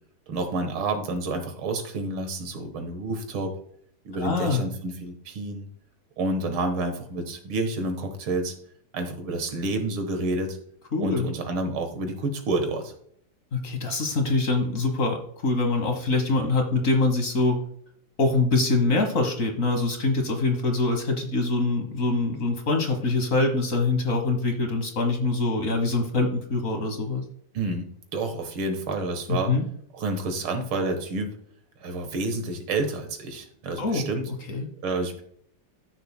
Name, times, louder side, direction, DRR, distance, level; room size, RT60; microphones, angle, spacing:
voice 1, 0.3-3.5 4.1-5.7 6.2-8.5 8.9-10.6 11.0-12.9 27.5-27.9 28.1-29.5 29.9-31.4 31.8-34.3 34.8-35.2, right 2 dB, 85° right, 6 dB, 2.2 m, -29 dB
voice 2, 4.2-4.6 10.9-11.3 13.5-17.6 18.2-27.2 29.3-29.7 33.8-34.1 34.5-34.7, left 3 dB, 45° left, 5 dB, 1.4 m, -24 dB
13.5 x 6.4 x 2.2 m, 0.65 s
omnidirectional pair, 2.2 m